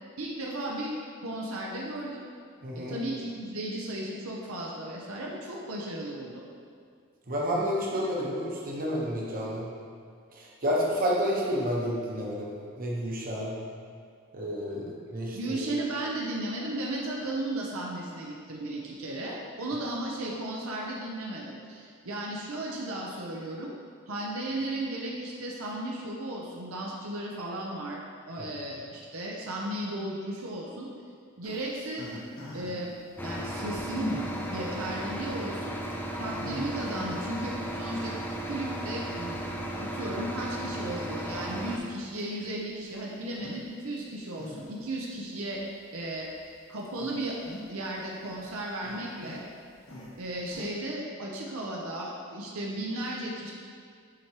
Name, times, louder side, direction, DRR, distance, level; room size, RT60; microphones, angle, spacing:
voice 1, 0.2-2.2 2.8-6.4 14.7-14.9 15.3-23.7 24.1-28.0 28.3-30.9 31.4-32.1 32.5-32.9 33.2-34.1 34.5-35.8 36.2-38.2 38.4-39.1 39.7-45.6 45.9-46.3 46.7-47.4 47.7-49.4 50.2-53.5, right 1 dB, 80° right, -3 dB, 0.7 m, -35 dB
voice 2, 2.6-2.9 7.3-9.7 10.4-12.5 12.8-13.5 14.3-15.6 28.4-28.5, equal, 45° right, -4 dB, 1.0 m, -30 dB
sound 1, 31.4-32.9 33.6-34.6 35.2-35.3 35.8-35.9 36.3-37.4 37.8-38.1 39.1-39.7 40.2-40.3 41.0-41.8 42.2-42.3 43.3-43.6 44.0-44.9 45.5-45.6 46.2-46.4 46.8-47.9 48.2-50.7, left 1 dB, 65° left, 1.1 m, -42 dB
sound 2, 33.2-41.8, right 1 dB, 10° left, 0.4 m, -35 dB
7.5 x 4.7 x 2.9 m, 2.2 s
head